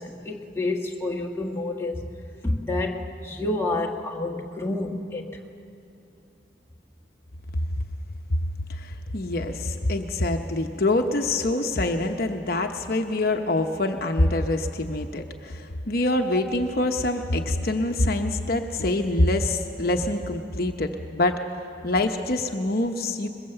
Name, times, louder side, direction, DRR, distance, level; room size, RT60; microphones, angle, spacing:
voice 1, 0.0-2.0 2.4-5.3 16.3-16.4, left 2 dB, 15° left, 0 dB, 1.5 m, -29 dB
voice 2, 8.7-21.4 21.8-23.3, left 2 dB, 55° left, 4 dB, 1.0 m, -25 dB
21.5 x 21.5 x 7.9 m, 2.8 s
head